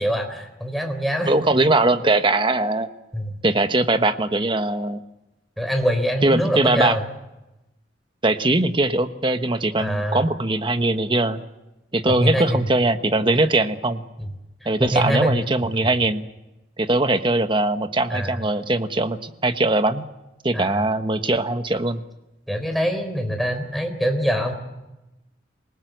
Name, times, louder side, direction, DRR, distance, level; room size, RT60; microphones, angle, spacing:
voice 1, 0.0-1.3 3.1-3.4 5.6-7.0 9.8-10.3 12.1-12.6 14.2-14.3 14.8-15.5 18.1-18.4 20.5-20.8 22.5-24.5, equal, ahead, 4 dB, 4.0 m, -24 dB
voice 2, 1.3-2.9 3.4-5.0 6.2-7.0 8.2-11.4 11.9-14.0 14.6-16.2 16.8-20.0 20.4-22.0, right 2 dB, 30° right, 9 dB, 1.2 m, -21 dB
27.0 x 19.0 x 8.1 m, 0.97 s
head